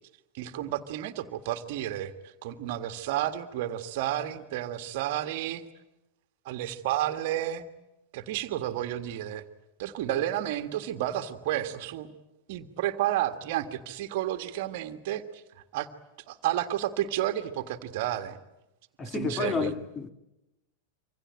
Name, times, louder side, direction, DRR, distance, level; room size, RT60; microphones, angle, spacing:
voice 1, 0.3-2.1 2.4-5.6 6.4-7.6 8.1-9.4 9.8-12.1 12.5-15.4 15.7-15.9 16.3-18.4 19.0-19.7, right 13 dB, 50° right, 1.7 m, -31 dB
voice 2, 19.0-20.1, left 4 dB, 20° left, 1.9 m, -30 dB
26.5 x 25.5 x 8.9 m
figure-of-eight pair, 90°, 0 cm